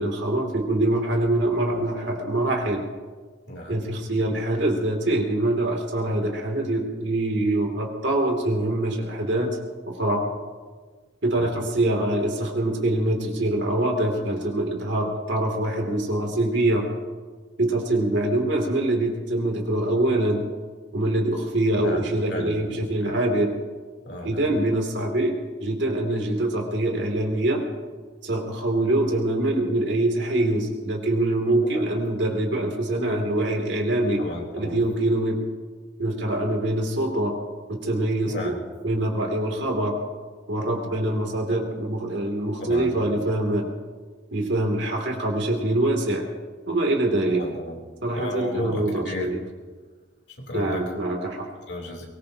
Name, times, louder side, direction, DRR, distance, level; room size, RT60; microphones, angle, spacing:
voice 1, 0.0-2.8 3.7-9.6 9.9-10.2 11.2-16.8 17.6-20.4 20.9-23.5 24.2-25.3 25.6-27.6 28.2-34.2 34.5-35.4 36.0-37.3 37.7-38.5 38.8-39.9 40.5-43.7 44.3-46.2 46.7-47.4 48.0-49.4 50.5-51.5, right 1 dB, 65° right, 2 dB, 2.8 m, -24 dB
voice 2, 3.5-3.8 11.3-11.5 21.8-23.1 24.0-24.5 31.7-31.9 34.2-34.8 38.3-38.6 42.6-42.9 47.3-47.8 48.1-49.3 50.4-50.9 51.7-52.1, left 1 dB, 60° left, 0 dB, 3.4 m, -34 dB
23.0 x 20.0 x 2.9 m, 1.4 s
head